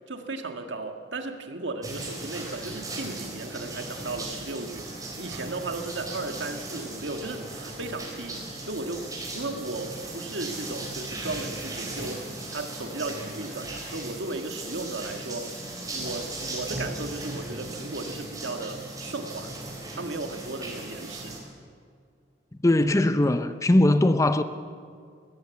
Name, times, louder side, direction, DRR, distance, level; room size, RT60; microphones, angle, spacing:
voice 1, 0.1-9.1 9.3-15.6 15.9-19.5 19.9-21.3, right 2 dB, 90° right, 1.8 m, -35 dB
sound 1, 1.8-21.4, right 2 dB, 20° right, 4.0 m, -37 dB
voice 2, 22.6-24.4, left 1 dB, 15° left, 0.5 m, -20 dB
20.5 x 15.5 x 8.3 m
head